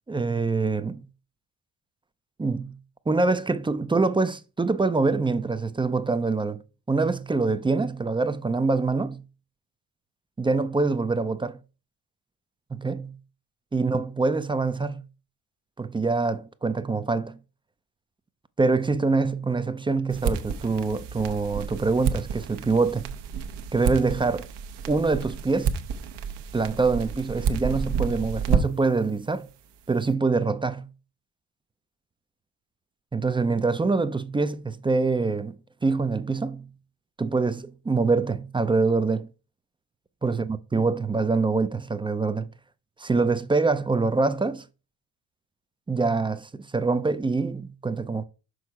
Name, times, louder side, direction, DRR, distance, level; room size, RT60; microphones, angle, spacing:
voice 1, 0.1-1.1 2.4-2.8 3.1-6.6 6.9-9.2 10.4-11.6 12.7-13.2 13.7-15.0 15.8-17.4 18.6-23.1 23.7-24.5 24.9-25.8 26.5-29.5 29.9-30.9 33.1-35.5 35.8-36.7 37.2-39.3 40.2-42.5 43.0-44.7 45.9-48.2, right 3 dB, 10° right, 0.4 m, -25 dB
sound 1, 20.1-29.0, right 6 dB, 70° right, 1.0 m, -30 dB
6.3 x 5.4 x 4.8 m
cardioid pair, 105°, 44 cm